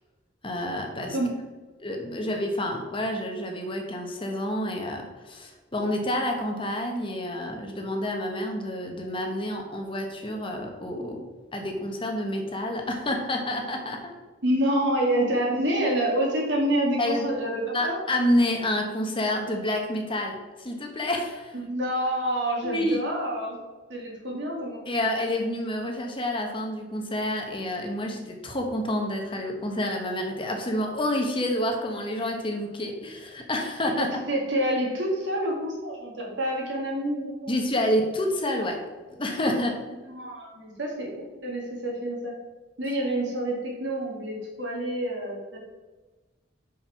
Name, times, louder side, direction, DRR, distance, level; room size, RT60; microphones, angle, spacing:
voice 1, 0.4-1.2 1.8-14.1 17.0-17.3 17.7-21.5 22.6-23.0 24.9-34.2 37.5-38.8 39.1-39.8, left 1 dB, 25° left, 2 dB, 1.0 m, -28 dB
voice 2, 14.4-18.0 21.5-23.5 23.9-24.8 34.0-37.5 40.1-42.3 42.8-45.6, right 1 dB, 65° right, -2 dB, 2.2 m, -27 dB
5.4 x 5.4 x 5.7 m, 1.3 s
head